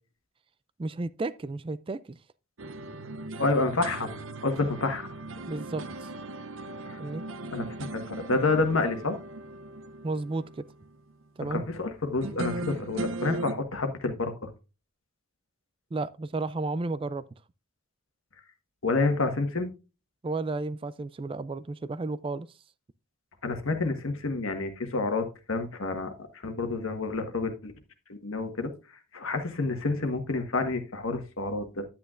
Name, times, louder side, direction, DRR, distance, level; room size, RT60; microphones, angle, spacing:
voice 1, 0.8-2.2 5.5-6.1 7.0-7.3 10.0-10.5 11.4-11.6 15.9-17.2 20.2-22.5, right 3 dB, 25° right, 0.3 m, -32 dB
sound 1, 2.6-11.2 12.2-13.5, right 2 dB, 70° right, 0.7 m, -38 dB
voice 2, 3.4-5.1 6.9-7.0 7.5-7.7 8.1-9.2 11.5-14.5 18.8-19.7 23.4-27.7 28.1-28.7 29.1-31.9, left 3 dB, 70° left, 1.5 m, -29 dB
10.5 x 8.7 x 2.5 m
head